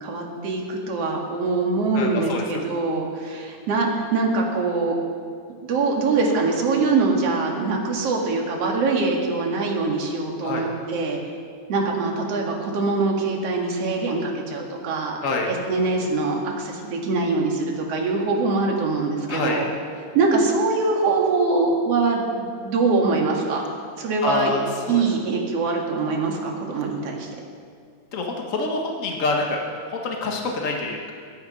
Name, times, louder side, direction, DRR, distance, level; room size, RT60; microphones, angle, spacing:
voice 1, 0.0-5.0 5.6-11.2 11.7-15.2 15.5-19.7 20.1-23.6 24.0-24.5 24.9-27.3, right 3 dB, 50° right, 0 dB, 2.8 m, -23 dB
voice 2, 1.9-2.4 10.4-10.6 15.2-15.5 19.3-19.6 24.2-25.0 28.1-29.6 29.9-31.1, left 3 dB, 65° left, 0 dB, 0.7 m, -26 dB
22.0 x 9.5 x 5.4 m, 2.2 s
omnidirectional pair, 3.8 m